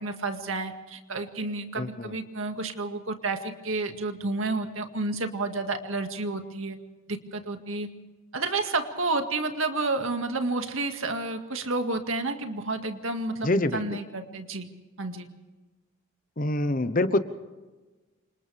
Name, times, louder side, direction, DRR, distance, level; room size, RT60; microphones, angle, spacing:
voice 1, 0.0-6.8 7.1-7.9 8.3-14.7 15.0-15.3, right 3 dB, 70° right, 6 dB, 2.0 m, -30 dB
voice 2, 1.8-2.1 13.4-13.8 16.4-17.2, left 1 dB, 40° left, 11 dB, 1.0 m, -25 dB
28.5 x 26.5 x 3.5 m, 1.2 s
head